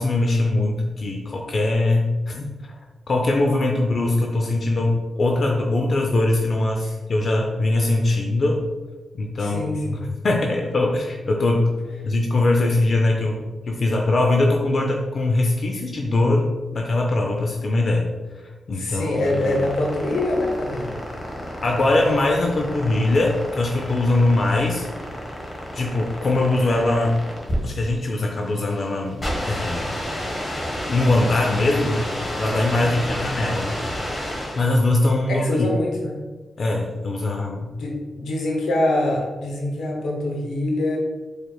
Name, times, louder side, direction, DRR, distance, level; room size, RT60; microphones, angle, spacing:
voice 1, 0.0-2.7 3.1-8.6 9.1-10.0 10.2-11.7 12.0-13.4 13.7-16.5 16.7-18.1 18.7-19.6 21.6-24.9 25.7-27.2 27.6-30.0 30.9-33.7 34.5-35.7 36.6-37.7, left 2 dB, 60° left, 1 dB, 0.5 m, -21 dB
voice 2, 9.4-10.1 18.7-21.0 32.8-33.2 35.3-36.2 37.8-41.0, left 1 dB, 90° left, 0 dB, 0.8 m, -24 dB
sound 1, 18.9-34.8, equal, 35° left, 1.2 m, -30 dB
4.4 x 3.2 x 2.3 m, 1.2 s
cardioid pair, 55°, 0 cm